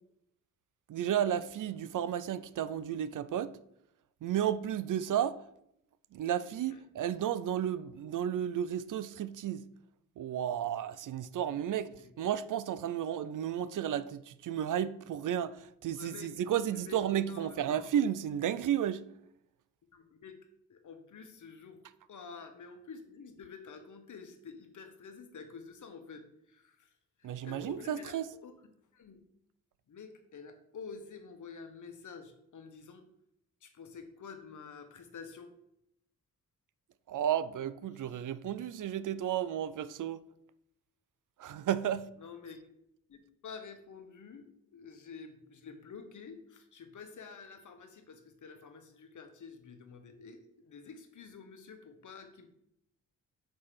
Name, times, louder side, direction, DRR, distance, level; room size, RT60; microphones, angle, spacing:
voice 1, 0.9-3.5 4.2-5.4 6.1-9.6 10.2-19.0 27.2-28.3 37.1-40.2 41.4-42.1, right 10 dB, 60° right, 0.5 m, -33 dB
voice 2, 11.7-12.1 15.9-16.3 16.7-17.0 17.3-17.9 19.9-20.4 20.7-21.8 22.1-26.9 27.2-28.5 28.9-29.2 29.9-33.1 33.6-35.5 37.9-38.2 42.2-42.7 43.1-52.5, left 5 dB, 55° left, 1.1 m, -49 dB
6.3 x 3.2 x 5.7 m
cardioid pair, 70°, 35 cm